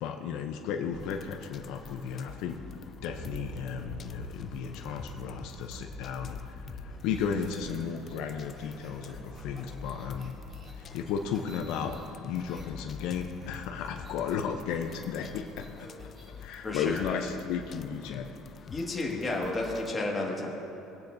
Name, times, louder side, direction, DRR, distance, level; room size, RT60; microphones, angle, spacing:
voice 1, 0.0-2.6 3.0-10.3 10.7-15.9 16.4-18.3, left 7 dB, 70° left, 4 dB, 0.6 m, -34 dB
sound 1, 0.9-19.9, left 7 dB, 35° left, 0.3 m, -47 dB
sound 2, 2.9-12.5, right 1 dB, 40° right, 2.5 m, -47 dB
sound 3, 6.9-12.7 13.0-17.7, equal, 25° right, 2.5 m, -54 dB
voice 2, 16.6-17.2 18.7-20.5, left 2 dB, 20° left, -2 dB, 1.9 m, -32 dB
21.0 x 8.7 x 2.7 m, 2.9 s
cardioid pair, 130°, 0 cm